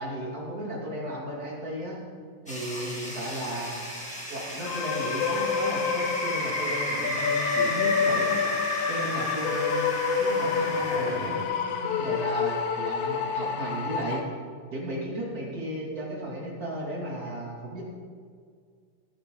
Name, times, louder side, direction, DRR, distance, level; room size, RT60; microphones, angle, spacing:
voice 1, 0.0-2.0 2.4-3.9 4.3-8.4 8.9-14.3 14.7-17.8, right 1 dB, 25° right, -4 dB, 3.2 m, -34 dB
sound 1, 2.5-11.4, equal, 5° left, 1.7 m, -33 dB
sound 2, 4.6-14.2, left 6 dB, 70° left, 2.2 m, -28 dB
17.0 x 10.5 x 4.0 m, 2.1 s
omnidirectional pair, 3.8 m